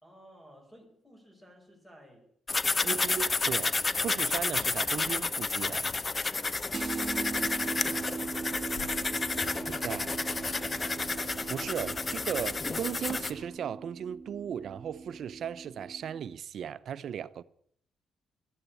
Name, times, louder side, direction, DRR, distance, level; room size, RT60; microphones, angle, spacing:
voice 1, 0.0-2.3 2.6-3.3 3.9-4.2 7.3-10.1, equal, 10° left, 5.4 m, -56 dB
sound 1, 2.5-13.3, left 3 dB, 30° left, 0.8 m, -31 dB
voice 2, 2.8-3.7 4.0-5.9 9.7-10.1 11.5-17.4, right 8 dB, 65° right, 0.7 m, -36 dB
sound 2, 6.7-16.3, right 4 dB, 30° right, 1.8 m, -40 dB
sound 3, 7.0-13.5, left 3 dB, 60° left, 7.3 m, -49 dB
13.5 x 10.5 x 9.7 m
cardioid pair, 90°, 0 cm